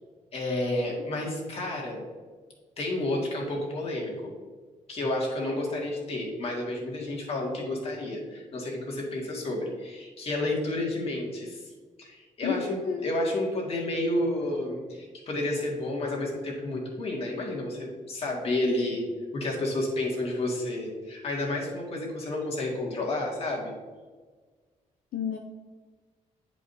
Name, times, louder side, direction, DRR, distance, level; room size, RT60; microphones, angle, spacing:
voice 1, 0.3-2.0 2.8-4.3 4.9-11.6 12.0-19.0 19.3-23.7, left 1 dB, 45° left, -2 dB, 2.0 m, -30 dB
voice 2, 12.4-13.4 25.1-25.4, left 6 dB, 80° left, 2 dB, 0.6 m, -31 dB
10.5 x 5.0 x 2.7 m, 1.4 s
wide cardioid pair, 150°, 14 cm